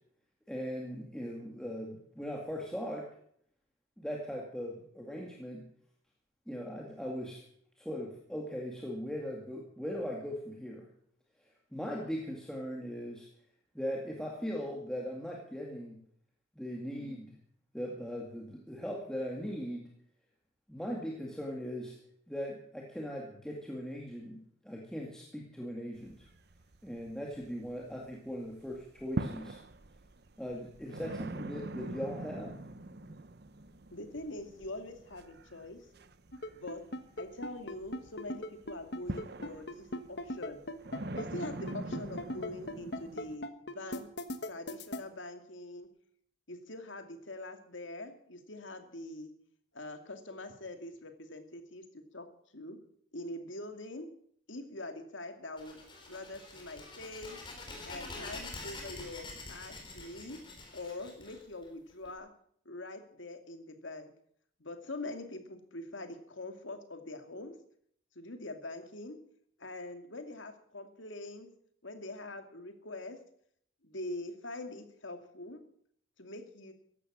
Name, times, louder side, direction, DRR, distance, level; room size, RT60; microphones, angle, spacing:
voice 1, 0.5-3.1 4.0-5.7 6.5-7.4 7.8-10.9 11.7-13.3 13.7-16.0 16.6-17.4 17.7-19.9 20.7-22.0 22.3-26.3 26.8-29.6 30.4-32.5, equal, 5° left, -1 dB, 2.1 m, -39 dB
sound 1, 26.0-28.1 28.5-43.4, right 2 dB, 55° right, 0.8 m, -43 dB
voice 2, 33.9-35.9 36.5-36.9 37.2-40.6 41.1-44.1 44.5-45.9 46.5-49.3 49.7-52.3 52.5-52.8 53.1-54.1 54.5-55.8 56.1-57.4 57.8-60.4 60.7-62.3 62.7-64.1 64.6-67.5 68.2-69.2 69.6-71.5 71.8-73.2 73.8-75.6 76.2-76.7, left 2 dB, 75° left, 7 dB, 2.3 m, -44 dB
sound 2, 36.3-45.0, left 1 dB, 55° left, 1.4 m, -38 dB
sound 3, 55.6-62.1, left 2 dB, 25° left, 3.9 m, -46 dB
15.0 x 11.5 x 7.4 m, 0.65 s
head